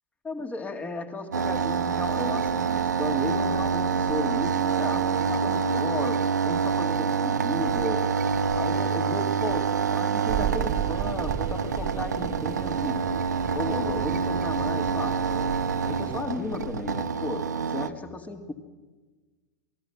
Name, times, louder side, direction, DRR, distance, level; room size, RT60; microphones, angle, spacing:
voice 1, 0.2-8.1 8.5-13.0 13.5-18.5, left 2 dB, 15° left, 7 dB, 2.2 m, -35 dB
sound 1, 1.3-17.9, right 6 dB, 75° right, 0.9 m, -26 dB
sound 2, 10.3-16.2, right 10 dB, 30° right, 1.0 m, -35 dB
27.5 x 19.0 x 6.0 m, 1.3 s
figure-of-eight pair, 95°, 9 cm